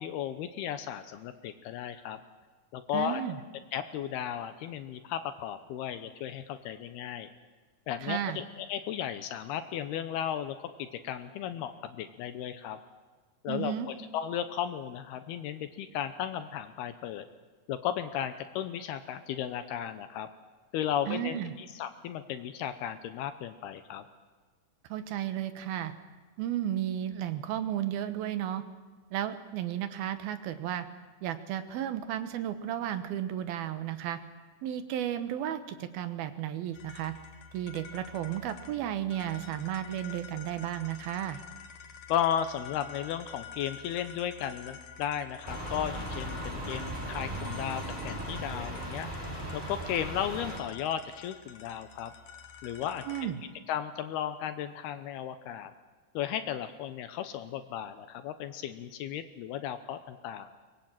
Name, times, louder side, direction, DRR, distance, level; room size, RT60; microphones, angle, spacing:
voice 1, 0.0-2.2 2.7-3.2 3.7-7.3 7.9-12.8 13.4-17.3 17.7-20.3 20.7-24.0 42.1-49.1 49.5-52.1 52.6-53.3 53.7-55.7 56.1-60.5, left 10 dB, 75° left, 10 dB, 2.7 m, -35 dB
voice 2, 2.9-3.4 8.0-8.4 13.5-13.9 21.1-21.6 24.9-25.9 26.4-28.6 29.1-30.9 31.2-34.2 34.6-37.1 37.5-41.4 53.1-53.4, right 11 dB, 70° right, 11 dB, 2.7 m, -33 dB
sound 1, 36.7-53.4, left 7 dB, 60° left, 2.8 m, -49 dB
sound 2, 45.4-50.6, right 1 dB, 10° right, 4.1 m, -37 dB
23.5 x 20.0 x 8.9 m, 1.4 s
omnidirectional pair, 4.9 m